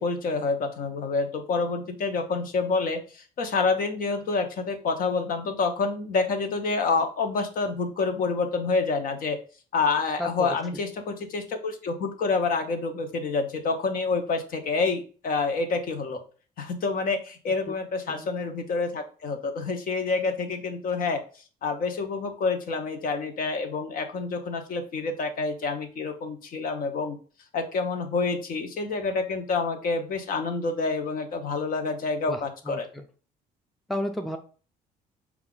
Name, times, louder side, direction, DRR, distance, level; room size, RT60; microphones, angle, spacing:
voice 1, 0.0-9.4 9.7-16.2 16.6-21.2 21.6-27.2 27.5-32.9, left 4 dB, 55° left, 5 dB, 0.8 m, -28 dB
voice 2, 10.2-10.8 18.1-18.3 32.3-33.0 33.9-34.4, left 1 dB, ahead, 5 dB, 0.4 m, -33 dB
4.6 x 2.4 x 3.7 m, 0.37 s
cardioid pair, 110°, 17 cm